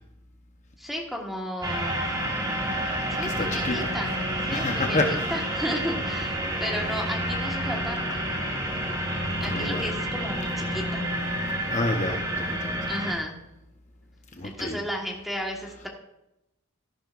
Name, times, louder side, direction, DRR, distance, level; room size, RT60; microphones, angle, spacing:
voice 1, 0.8-2.1 3.1-4.1 4.4-8.2 9.4-11.1 12.9-13.4 14.4-15.9, equal, ahead, 0 dB, 1.5 m, -34 dB
sound 1, 1.6-13.1, right 1 dB, 20° right, 1.7 m, -29 dB
voice 2, 3.2-3.9 4.5-5.4 9.4-9.9 11.7-12.9 14.3-14.8, left 2 dB, 35° left, 3 dB, 0.9 m, -29 dB
13.5 x 11.0 x 2.5 m, 0.90 s
head